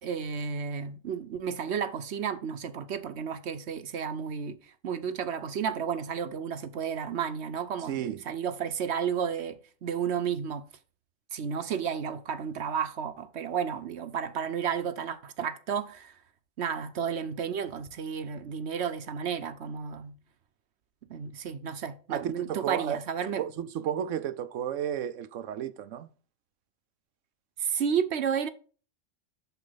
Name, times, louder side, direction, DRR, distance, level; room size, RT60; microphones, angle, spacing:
voice 1, 0.0-4.6 4.8-10.6 11.3-16.1 16.6-20.1 21.1-23.4 27.6-28.5, right 7 dB, 65° right, 1.0 m, -32 dB
voice 2, 7.9-8.2 22.1-23.0 23.4-26.1, right 9 dB, 85° right, 1.0 m, -33 dB
8.2 x 6.7 x 4.0 m
omnidirectional pair, 1.3 m